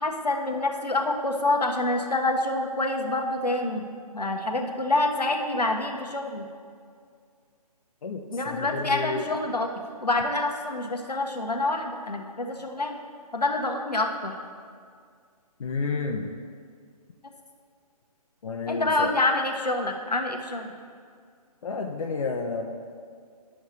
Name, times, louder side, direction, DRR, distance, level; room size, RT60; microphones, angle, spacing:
voice 1, 0.0-3.8 4.1-6.5 8.3-9.7 10.0-13.0 13.3-14.4 18.7-20.7, left 2 dB, 90° left, 3 dB, 1.0 m, -27 dB
voice 2, 8.0-9.3 15.6-16.3 18.4-19.1 21.6-22.6, left 4 dB, 55° left, 3 dB, 0.7 m, -31 dB
11.0 x 6.3 x 3.2 m, 2.1 s
figure-of-eight pair, 140°, 20 cm